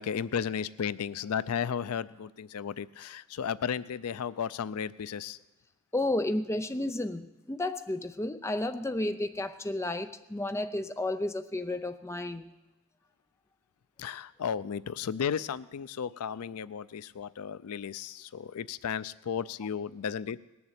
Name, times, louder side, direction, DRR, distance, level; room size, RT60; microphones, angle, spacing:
voice 1, 0.0-5.4 14.0-20.4, left 7 dB, 80° left, 17 dB, 0.4 m, -34 dB
voice 2, 5.9-12.5, left 1 dB, 10° left, 9 dB, 0.6 m, -32 dB
19.0 x 7.2 x 8.2 m, 1.1 s
head